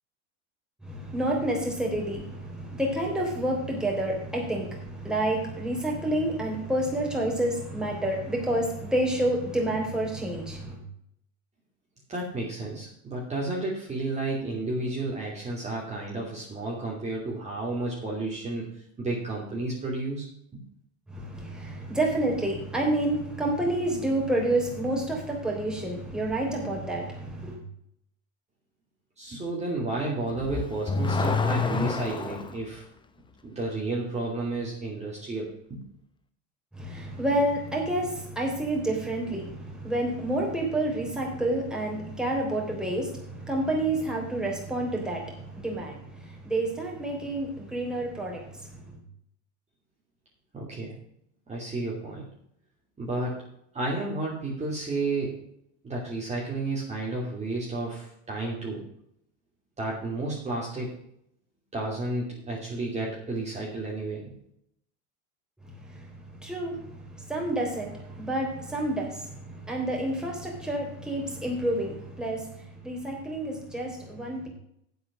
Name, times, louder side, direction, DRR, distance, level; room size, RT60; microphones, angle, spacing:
voice 1, 0.8-10.8 21.1-27.6 36.8-48.9 66.0-66.1 66.4-66.8 67.1-74.5, right 1 dB, ahead, -1 dB, 3.5 m, -29 dB
voice 2, 12.1-18.7 19.0-20.3 29.2-32.8 33.4-35.8 50.5-50.9 51.5-52.3 53.0-53.3 53.7-55.4 55.8-58.8 59.8-60.9 61.7-64.2, right 2 dB, 20° right, -3 dB, 2.7 m, -32 dB
Car / Accelerating revving vroom, 30.3-32.6, left 4 dB, 15° left, 0.8 m, -27 dB
8.3 x 8.0 x 6.0 m, 0.73 s
supercardioid pair, 125°, 35 cm